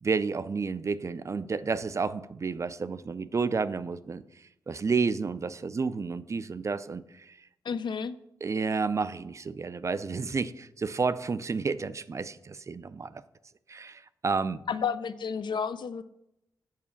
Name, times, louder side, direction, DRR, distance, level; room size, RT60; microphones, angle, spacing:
voice 1, 0.0-4.2 4.7-7.4 8.4-13.2 13.7-14.6, right 4 dB, 40° right, 0.4 m, -31 dB
voice 2, 7.6-8.1 14.7-16.0, left 6 dB, 75° left, 0.5 m, -31 dB
7.4 x 4.7 x 7.0 m
wide cardioid pair, 100°, 8 cm